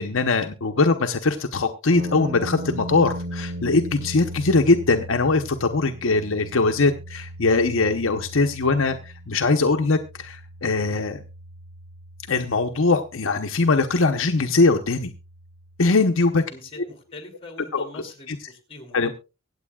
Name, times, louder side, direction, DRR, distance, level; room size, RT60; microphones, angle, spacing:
voice 1, 0.0-11.2 12.3-15.1 15.8-16.4 17.7-18.4 18.9-19.2, left 3 dB, 75° left, 5 dB, 0.8 m, -21 dB
sound 1, 1.9-16.0, equal, 55° right, 1.2 m, -38 dB
voice 2, 16.5-19.2, left 2 dB, 30° left, 4 dB, 2.9 m, -43 dB
24.0 x 8.1 x 2.3 m, 0.29 s
head